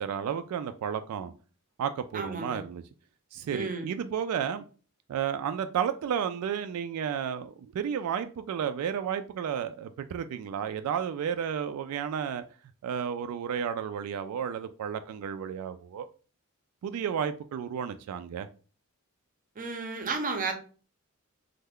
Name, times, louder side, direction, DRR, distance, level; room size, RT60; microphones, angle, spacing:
voice 1, 0.0-1.3 1.8-2.8 3.3-4.6 5.1-12.4 12.8-16.1 16.8-18.5, right 8 dB, 90° right, 0.3 m, -32 dB
voice 2, 2.1-2.6 3.5-3.9 19.6-20.5, right 4 dB, 40° right, 0.6 m, -32 dB
3.2 x 2.1 x 3.5 m
head